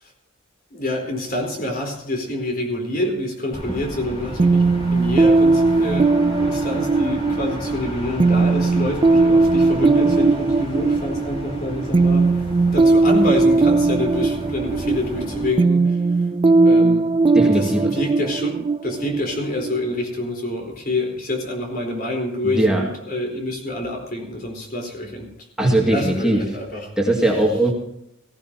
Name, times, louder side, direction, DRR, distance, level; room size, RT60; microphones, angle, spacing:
voice 1, 0.7-12.4 12.7-16.0 16.6-25.3 25.6-26.9, left 1 dB, 45° left, 2 dB, 4.1 m, -27 dB
sound 1, 3.5-15.5, equal, 30° left, 3.9 m, -33 dB
sound 2, 4.4-20.0, right 3 dB, 25° right, 0.4 m, -18 dB
voice 2, 17.3-17.9 22.4-22.8 25.6-26.4 27.0-27.7, right 1 dB, 5° right, -2 dB, 2.2 m, -19 dB
17.5 x 16.0 x 2.9 m, 0.77 s
head